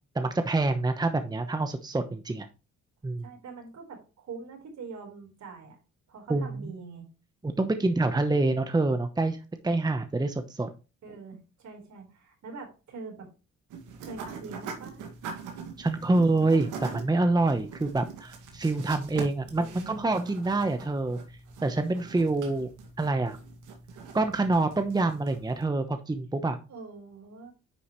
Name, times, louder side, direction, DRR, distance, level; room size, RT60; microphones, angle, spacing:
voice 1, 0.1-2.5 3.0-3.3 6.3-6.7 7.4-9.4 9.6-10.7 15.8-21.2 21.6-22.7 23.0-23.4 24.1-26.6, right 2 dB, 15° right, 8 dB, 0.9 m, -26 dB
voice 2, 3.2-5.8 6.1-7.1 11.0-13.3 14.0-15.0 19.6-20.0 26.7-27.5, right 4 dB, 65° right, 2 dB, 4.3 m, -44 dB
sound 1, 13.7-25.6, right 5 dB, 90° right, 2.1 m, -43 dB
10.0 x 5.5 x 3.1 m, 0.31 s
cardioid pair, 90°, 30 cm